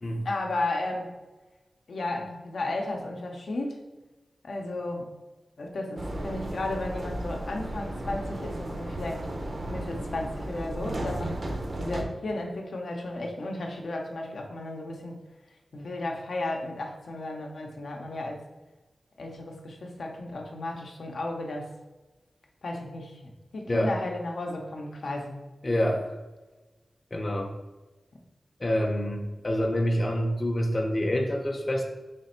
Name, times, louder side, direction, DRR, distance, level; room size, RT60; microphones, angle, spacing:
voice 1, 0.2-1.2 1.9-3.8 4.4-5.1 5.6-9.3 9.7-15.2 15.7-18.4 19.2-21.7 22.6-25.4, left 2 dB, 85° left, 1 dB, 0.6 m, -34 dB
sound 1, 6.0-12.0, right 1 dB, 45° right, 0.6 m, -34 dB
voice 2, 25.6-26.1 27.1-27.5 28.6-31.8, equal, 35° left, 2 dB, 0.5 m, -27 dB
3.3 x 3.3 x 4.3 m, 1.2 s
wide cardioid pair, 85°, 0 cm